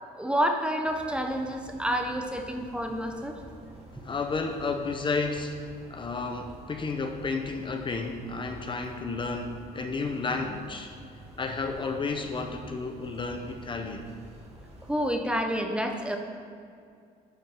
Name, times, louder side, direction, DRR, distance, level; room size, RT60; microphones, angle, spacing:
voice 1, 0.1-3.4 4.0-4.1 14.8-16.2, equal, 5° right, 3 dB, 0.7 m, -29 dB
sound 1, 0.8-15.1, right 1 dB, 40° right, 1.5 m, -49 dB
voice 2, 4.0-5.5 5.9-10.9 11.4-14.1, left 4 dB, 30° left, 5 dB, 0.7 m, -32 dB
11.5 x 4.5 x 4.7 m, 2.3 s
cardioid pair, 110°, 17 cm